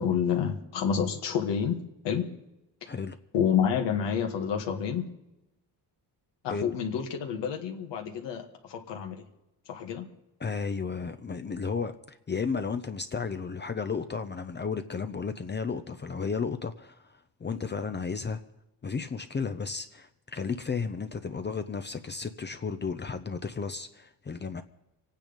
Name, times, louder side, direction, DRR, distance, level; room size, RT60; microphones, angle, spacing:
voice 1, 0.0-1.8 2.0-2.3 3.3-5.1 6.4-9.3 9.7-10.1, left 8 dB, 85° left, 2 dB, 1.9 m, -29 dB
voice 2, 2.8-3.2 6.5-6.7 10.4-18.4 18.8-24.6, left 5 dB, 25° left, 8 dB, 0.7 m, -33 dB
25.0 x 9.2 x 5.2 m, 0.92 s
cardioid pair, 115°, 42 cm